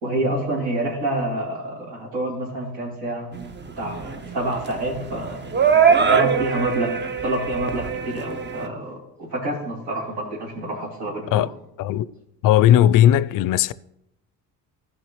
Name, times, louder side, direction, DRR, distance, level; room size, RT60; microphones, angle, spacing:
voice 1, 0.0-3.4 3.8-5.4 6.0-6.9 7.2-11.5, right 1 dB, 65° right, 2.9 m, -27 dB
sound 1, 3.3-8.7, right 6 dB, 25° right, 0.7 m, -22 dB
voice 2, 12.4-13.7, left 11 dB, 55° left, 0.5 m, -17 dB
14.5 x 5.3 x 3.1 m
hypercardioid pair, 70°, 41 cm